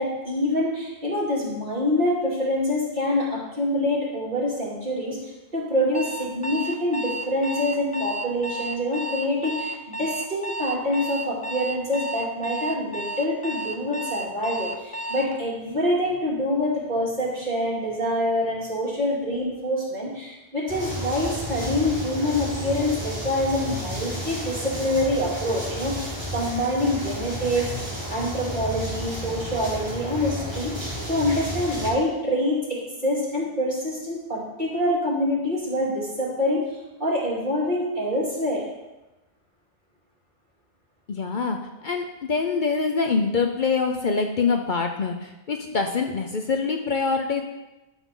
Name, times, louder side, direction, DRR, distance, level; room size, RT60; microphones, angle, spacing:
voice 1, 0.0-5.2 5.5-27.7 28.1-36.6 37.0-38.6, left 1 dB, 50° right, -6 dB, 2.6 m, -26 dB
Alarm, 5.9-15.3, right 1 dB, 10° left, 0.4 m, -32 dB
sound 1, 20.7-31.9, equal, 25° right, 2.3 m, -32 dB
voice 2, 41.1-47.4, left 4 dB, 55° left, 4 dB, 0.8 m, -25 dB
12.0 x 5.6 x 3.7 m, 1.0 s
omnidirectional pair, 1.1 m